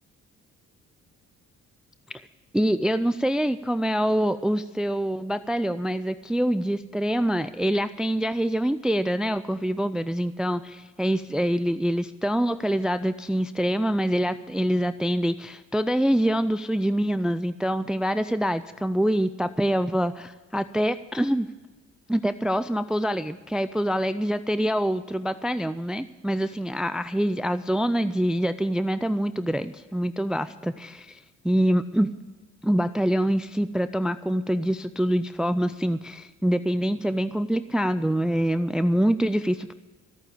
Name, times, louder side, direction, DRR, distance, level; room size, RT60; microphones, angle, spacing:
voice 1, 2.5-21.5 22.1-31.2 31.4-32.1 32.6-39.7, equal, ahead, 13 dB, 0.4 m, -25 dB
14.0 x 8.9 x 8.5 m, 1.2 s
cardioid pair, 90°, 30 cm